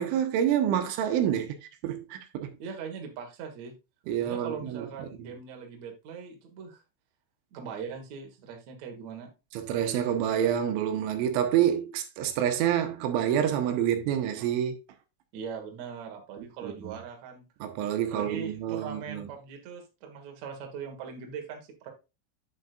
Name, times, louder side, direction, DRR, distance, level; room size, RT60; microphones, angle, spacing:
voice 1, 0.0-1.6 1.8-2.5 4.1-4.9 5.2-5.3 9.5-14.8 16.4-17.0 17.6-19.3, right 10 dB, 85° right, 3.1 m, -28 dB
voice 2, 2.6-3.7 4.2-6.8 7.5-9.3 15.3-17.4 18.0-21.9, right 6 dB, 65° right, 1.8 m, -40 dB
8.5 x 7.8 x 2.5 m
omnidirectional pair, 5.7 m